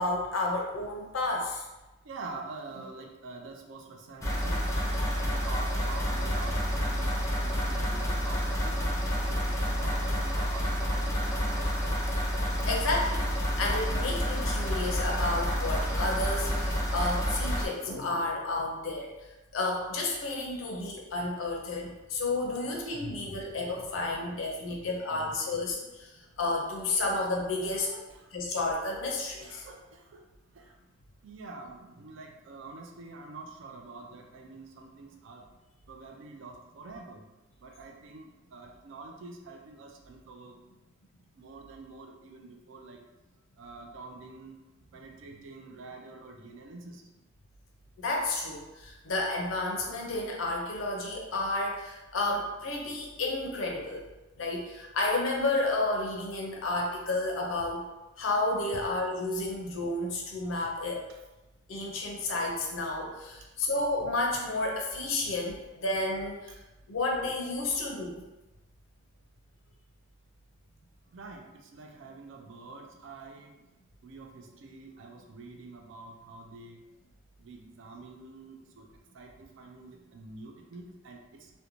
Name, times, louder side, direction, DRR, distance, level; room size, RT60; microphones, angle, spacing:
voice 1, 0.0-1.6 12.7-19.1 19.5-26.1 26.4-27.9 28.3-29.6 48.0-54.1 54.4-57.8 58.2-61.0 61.7-66.5 66.9-68.2, left 2 dB, 85° left, -1 dB, 0.5 m, -31 dB
voice 2, 2.0-9.5 9.8-11.7 12.6-12.7 24.2-24.8 25.1-25.6 25.9-26.3 27.6-28.3 29.4-30.3 30.5-30.8 31.2-35.4 35.9-37.3 37.6-40.6 41.3-43.0 43.6-44.6 44.9-47.1 58.7-58.9 70.8-70.9 71.1-73.6 74.0-76.8 77.4-78.9 79.1-81.5, right 3 dB, 70° right, 2 dB, 0.4 m, -46 dB
sound 1, 4.2-17.7, equal, 15° left, 0.4 m, -29 dB
2.5 x 2.1 x 2.9 m, 1.1 s
head